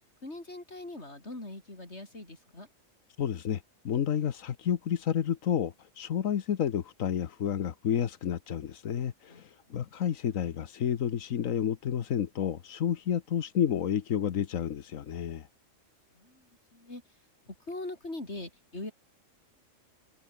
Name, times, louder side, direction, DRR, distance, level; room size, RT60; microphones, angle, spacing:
voice 1, 0.2-2.7 9.3-9.8 16.1-17.0 17.5-18.9, left 2 dB, 55° left, 5.7 m, -42 dB
voice 2, 3.2-15.5, left 9 dB, 90° left, 1.4 m, -30 dB
omnidirectional pair, 1.3 m